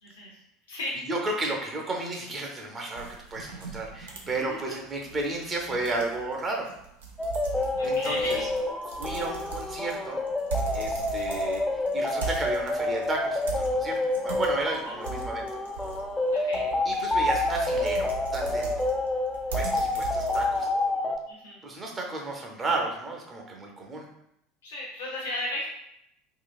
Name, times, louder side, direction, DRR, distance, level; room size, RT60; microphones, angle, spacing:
voice 1, 0.0-0.3 0.7-1.0 4.7-4.8 7.8-8.4 9.1-9.3 14.8-15.0 16.3-16.6 21.3-21.6 24.6-25.7, left 1 dB, 70° left, -4 dB, 0.8 m, -35 dB
voice 2, 1.1-3.1 3.3-6.7 7.8-8.4 9.0-10.2 10.7-14.0 14.2-15.5 16.4-16.5 16.8-18.9 19.5-20.7 21.6-24.1, right 2 dB, 25° right, 0 dB, 0.7 m, -33 dB
sound 1, 3.0-20.9, right 5 dB, 70° right, 0.5 m, -39 dB
sound 2, 7.2-21.2, left 2 dB, 10° left, 0.4 m, -28 dB
3.7 x 2.3 x 2.4 m, 0.78 s
figure-of-eight pair, 70°, 0 cm